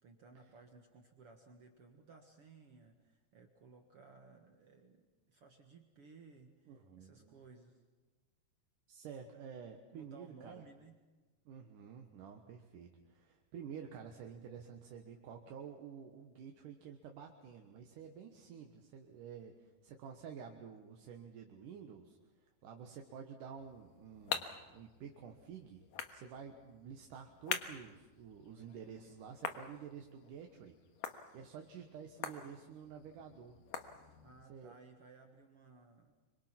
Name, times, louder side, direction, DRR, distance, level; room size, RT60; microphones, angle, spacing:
voice 1, 0.0-7.8 9.9-11.0 34.2-36.1, right 4 dB, 50° right, 4 dB, 2.1 m, -59 dB
voice 2, 6.7-7.4 8.9-10.6 11.5-25.8 26.1-30.7 31.3-33.6 34.5-34.7, right 7 dB, 75° right, 3 dB, 2.8 m, -50 dB
sound 1, 23.6-34.5, left 8 dB, 75° left, 2.9 m, -46 dB
26.0 x 25.0 x 5.9 m, 1.2 s
omnidirectional pair, 3.9 m